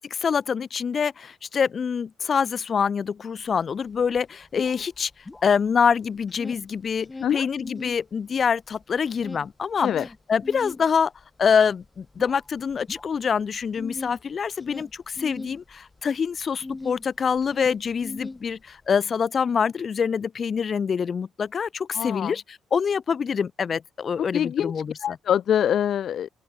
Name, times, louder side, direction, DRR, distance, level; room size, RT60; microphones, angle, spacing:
voice 1, 0.0-5.1 5.4-11.1 11.4-25.2, left 6 dB, 45° left, 2.0 m, -25 dB
sound 1, 3.5-3.6 3.9-5.9 6.2-8.0 8.4-17.0 17.3-18.9, left 3 dB, 20° left, 3.0 m, -40 dB
voice 2, 21.9-22.3 24.3-24.7 25.0-26.3, left 9 dB, 65° left, 0.6 m, -24 dB
open air
cardioid pair, 90°, 0 cm